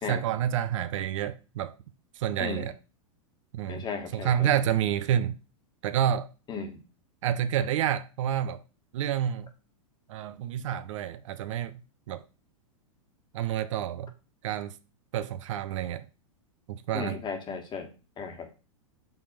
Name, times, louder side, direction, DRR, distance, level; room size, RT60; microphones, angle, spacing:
voice 1, 0.1-1.7 2.2-2.7 3.5-3.8 4.1-5.4 5.8-6.3 7.2-8.6 8.9-9.5 10.1-11.8 12.1-12.2 13.3-14.1 14.4-14.7 15.1-16.0 16.7-17.2, right 10 dB, 65° right, 0.6 m, -28 dB
voice 2, 3.7-4.5 6.5-6.8 16.9-18.5, left 5 dB, 25° left, 1.5 m, -36 dB
5.4 x 3.5 x 5.7 m
hypercardioid pair, 110°, 18 cm